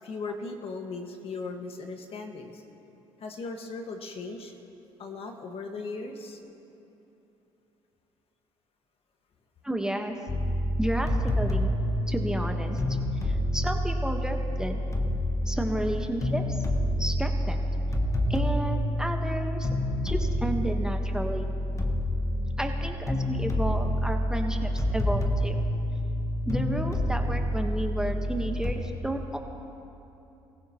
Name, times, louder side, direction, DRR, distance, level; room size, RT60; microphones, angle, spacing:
voice 1, 0.0-2.6 3.2-4.6 5.0-6.4, left 3 dB, 50° left, 4 dB, 1.7 m, -37 dB
voice 2, 9.6-10.2 10.8-11.7 12.1-13.0 13.2-14.8 15.4-16.6 17.0-17.6 18.3-19.7 20.0-21.5 22.6-25.6 26.5-29.4, right 1 dB, 5° right, 3 dB, 1.3 m, -32 dB
sound 1, 10.3-28.7, left 1 dB, 25° left, 1.6 m, -28 dB
24.0 x 15.5 x 3.0 m, 2.9 s
supercardioid pair, 70°, 12 cm